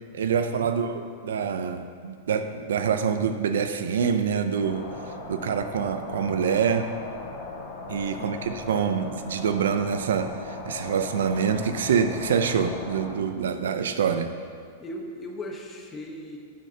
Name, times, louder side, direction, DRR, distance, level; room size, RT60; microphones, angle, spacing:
voice 1, 0.1-4.9 5.3-6.9 7.9-14.3, right 7 dB, 85° right, 8 dB, 0.6 m, -26 dB
sound 1, 4.6-13.1, left 3 dB, 45° left, 1.9 m, -38 dB
voice 2, 8.2-8.5 14.8-16.4, left 1 dB, 20° left, 1 dB, 1.1 m, -38 dB
13.0 x 6.6 x 2.9 m, 2.1 s
hypercardioid pair, 135°, 0 cm